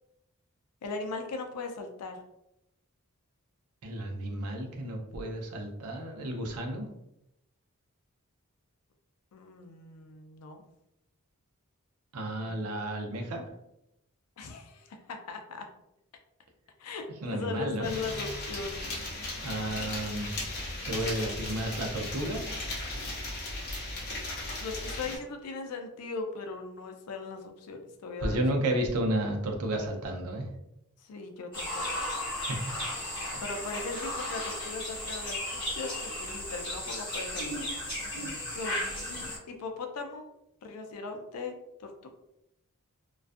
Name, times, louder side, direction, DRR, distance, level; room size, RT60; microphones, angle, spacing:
voice 1, 0.8-2.2 9.3-10.6 14.4-15.7 16.8-17.1 17.3-18.9 19.5-19.6 21.2-21.4 24.6-28.4 31.0-31.8 33.4-37.7 38.1-38.8 39.5-40.3 40.6-41.5 41.8-42.1, left 3 dB, 85° left, 4 dB, 0.4 m, -39 dB
voice 2, 3.8-6.9 12.1-13.4 17.2-18.0 19.4-20.3 20.8-22.4 28.2-30.5 32.5-32.7 33.3-33.4, right 1 dB, 85° right, 2 dB, 0.5 m, -32 dB
sound 1, 17.8-25.2, left 2 dB, 45° left, 0.7 m, -36 dB
sound 2, 31.5-39.4, left 1 dB, 20° left, 1.0 m, -35 dB
2.3 x 2.3 x 2.5 m, 0.83 s
head